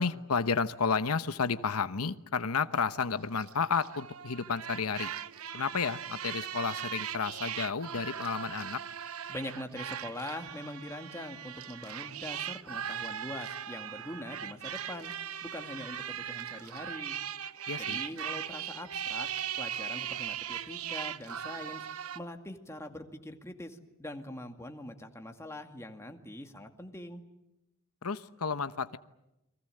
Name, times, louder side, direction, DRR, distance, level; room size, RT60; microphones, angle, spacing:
voice 1, 0.0-5.1 5.5-8.8 17.7-18.0 28.0-29.0, left 5 dB, 90° left, 12 dB, 1.0 m, -31 dB
sound 1, 3.1-22.2, right 9 dB, 75° right, 1.0 m, -39 dB
voice 2, 9.3-15.1 15.4-17.2 17.8-19.3 19.6-21.8 22.1-27.2, left 1 dB, 15° left, 5 dB, 2.1 m, -43 dB
29.5 x 23.0 x 7.8 m, 0.90 s
head